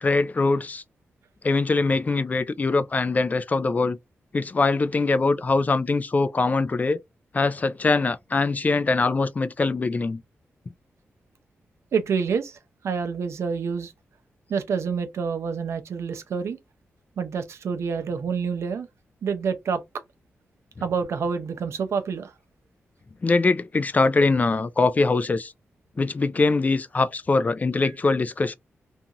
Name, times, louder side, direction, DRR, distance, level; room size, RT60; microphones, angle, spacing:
voice 1, 0.0-0.8 1.4-4.0 4.3-7.0 7.3-10.2 23.2-25.5 26.0-28.5, left 3 dB, 35° left, 0.3 m, -22 dB
voice 2, 11.9-12.6 12.8-13.9 14.5-16.6 17.2-18.9 19.2-19.8 20.8-22.3, right 6 dB, 80° right, 0.6 m, -27 dB
2.6 x 2.3 x 2.8 m
cardioid pair, 75°, 5 cm